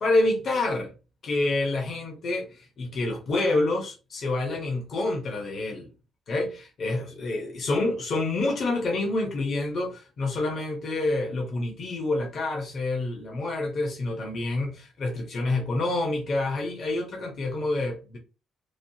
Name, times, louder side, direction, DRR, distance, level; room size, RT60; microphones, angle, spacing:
voice 1, 0.0-0.9 1.2-5.9 6.3-18.2, left 2 dB, 55° left, 0.9 m, -27 dB
3.1 x 2.3 x 2.8 m
cardioid pair, 90°, 0 cm